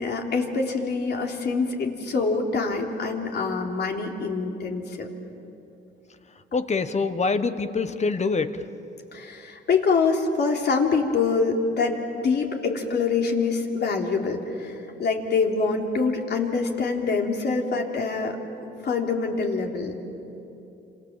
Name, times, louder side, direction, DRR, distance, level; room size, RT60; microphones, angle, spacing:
voice 1, 0.0-5.1 9.1-18.4 18.8-20.0, left 4 dB, 55° left, 1 dB, 3.5 m, -25 dB
voice 2, 6.5-8.6, left 4 dB, 35° left, 10 dB, 1.4 m, -25 dB
28.5 x 27.0 x 7.6 m, 2.9 s
cardioid pair, 90°, 20 cm